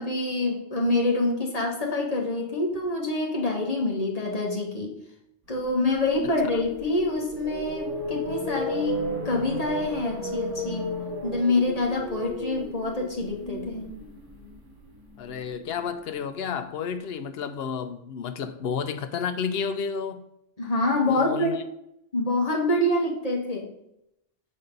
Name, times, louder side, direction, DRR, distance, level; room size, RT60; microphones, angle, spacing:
voice 1, 0.0-5.0 5.5-10.9 11.2-13.9 20.6-21.5 22.1-23.7, left 2 dB, 35° left, 1.4 m, -26 dB
sound 1, 5.7-15.8, equal, 85° right, 2.3 m, -34 dB
voice 2, 15.2-20.3 21.1-21.6, left 6 dB, 60° left, 0.8 m, -31 dB
7.7 x 4.2 x 5.2 m
omnidirectional pair, 1.2 m